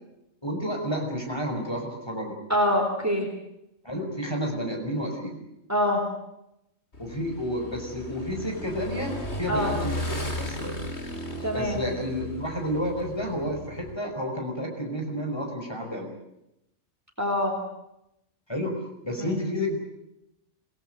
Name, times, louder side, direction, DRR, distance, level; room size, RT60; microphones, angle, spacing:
voice 1, 0.4-2.4 3.8-5.4 7.0-10.8 11.5-16.1 18.5-18.8 19.0-19.8, equal, 20° left, 2 dB, 5.5 m, -30 dB
voice 2, 2.5-3.3 5.7-6.0 9.5-9.8 11.4-11.8 17.2-17.6 19.2-19.3, left 1 dB, 15° right, 3 dB, 4.1 m, -25 dB
Motorcycle / Engine, 6.9-14.0, left 1 dB, 65° left, 3.8 m, -36 dB
26.5 x 19.0 x 8.2 m, 0.84 s
omnidirectional pair, 1.2 m